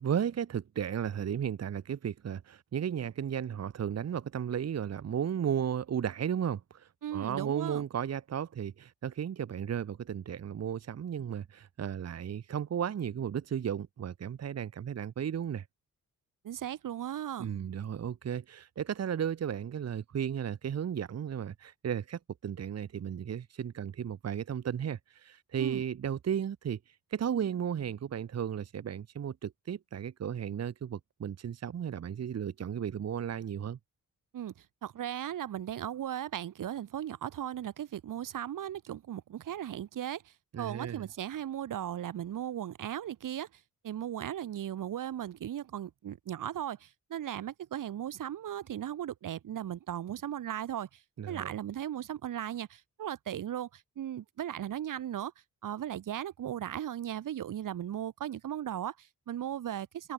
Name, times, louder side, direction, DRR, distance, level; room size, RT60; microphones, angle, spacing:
voice 1, 0.0-15.6 17.4-33.8 40.5-41.1 51.2-51.5, right 8 dB, 50° right, 1.1 m, -34 dB
voice 2, 7.0-7.8 16.4-17.5 25.6-25.8 34.3-43.5 43.8-51.0 51.3-55.3 55.6-60.1, right 10 dB, 70° right, 1.4 m, -37 dB
cardioid pair, 90°, 33 cm